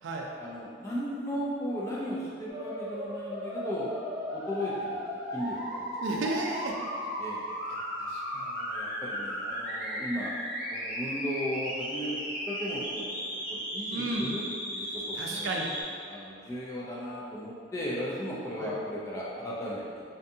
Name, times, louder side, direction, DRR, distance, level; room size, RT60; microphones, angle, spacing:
voice 1, 0.4-3.9 4.3-5.1 5.3-5.9 7.2-7.6 8.4-10.3 10.7-12.2 12.5-15.6 16.1-20.0, equal, 15° left, -6 dB, 0.3 m, -36 dB
sound 1, 2.5-15.8, equal, 20° right, 1.1 m, -35 dB
voice 2, 6.0-6.8 7.7-8.6 13.9-14.3 15.1-15.7 18.6-18.7, right 2 dB, 75° right, 0 dB, 0.3 m, -33 dB
2.6 x 2.3 x 2.6 m, 2.3 s
head